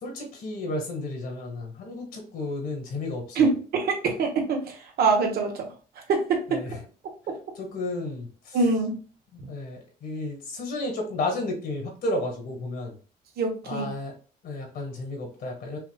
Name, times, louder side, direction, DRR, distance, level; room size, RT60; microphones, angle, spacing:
voice 1, 0.0-3.5 6.5-6.8 7.6-8.6 9.5-12.9 13.7-14.1 14.4-15.8, left 2 dB, 60° left, 2 dB, 2.0 m, -32 dB
voice 2, 3.3-5.6 6.1-6.6 7.3-7.4 8.5-9.0 9.4-9.5 13.4-13.9, right 4 dB, 65° right, 3 dB, 1.2 m, -24 dB
5.7 x 2.5 x 2.4 m, 0.38 s
cardioid pair, 110°, 17 cm